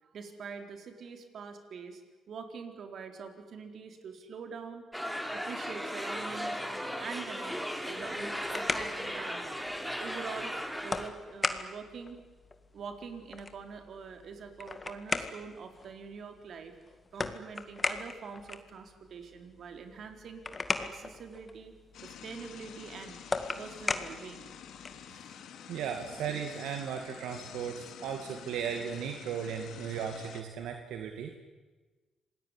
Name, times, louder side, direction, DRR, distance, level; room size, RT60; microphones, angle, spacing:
voice 1, 0.0-2.0 2.3-4.9 5.3-6.6 7.0-7.5 7.9-9.6 10.0-12.2 12.7-16.8 17.1-21.8 22.0-23.2 23.6-24.5 25.3-25.4 27.0-27.1, right 5 dB, 60° right, 6 dB, 4.0 m, -44 dB
sound 1, 4.9-11.1, equal, ahead, 3.4 m, -36 dB
sound 2, 8.1-25.1, left 3 dB, 25° left, 2.0 m, -39 dB
sound 3, 21.9-30.4, left 8 dB, 75° left, 2.6 m, -48 dB
voice 2, 25.7-31.3, right 7 dB, 85° right, 4 dB, 2.3 m, -36 dB
27.0 x 19.5 x 9.9 m, 1.3 s
cardioid pair, 90°, 0 cm